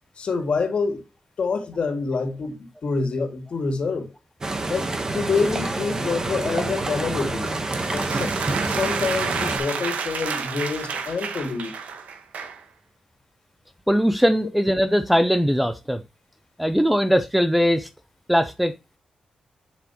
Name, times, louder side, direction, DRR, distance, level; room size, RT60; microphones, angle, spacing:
voice 1, 0.2-1.0 1.4-4.1 4.7-4.9 5.1-7.5 7.9-11.7, left 4 dB, 50° left, 2.1 m, -27 dB
sound 1, 4.4-9.6, right 2 dB, 25° right, 1.1 m, -27 dB
sound 2, 7.5-12.6, right 6 dB, 90° right, 1.4 m, -30 dB
voice 2, 13.9-16.0 16.6-17.9 18.3-18.7, equal, 5° right, 0.5 m, -20 dB
7.2 x 7.1 x 2.9 m
wide cardioid pair, 145°, 2 cm